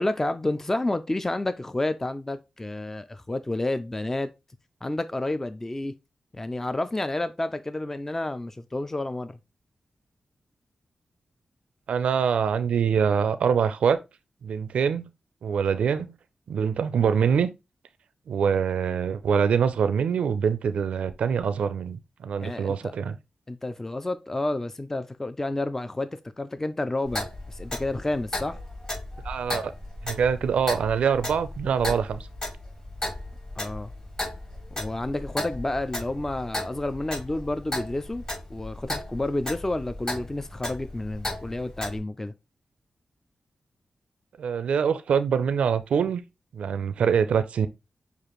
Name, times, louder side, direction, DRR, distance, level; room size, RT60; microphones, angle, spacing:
voice 1, 0.0-4.3 4.8-5.9 6.3-9.4 22.4-22.9 23.5-28.6 33.6-33.9 34.8-38.2 38.5-42.3, left 2 dB, 20° left, 0.4 m, -30 dB
voice 2, 11.9-14.0 14.4-15.1 15.4-16.1 16.5-17.5 18.3-23.2 29.2-29.7 30.0-32.2 44.4-46.2 46.5-47.7, right 7 dB, 90° right, 0.4 m, -24 dB
Clock, 27.1-42.0, left 1 dB, 35° left, 2.6 m, -35 dB
6.6 x 2.5 x 3.0 m
cardioid pair, 65°, 2 cm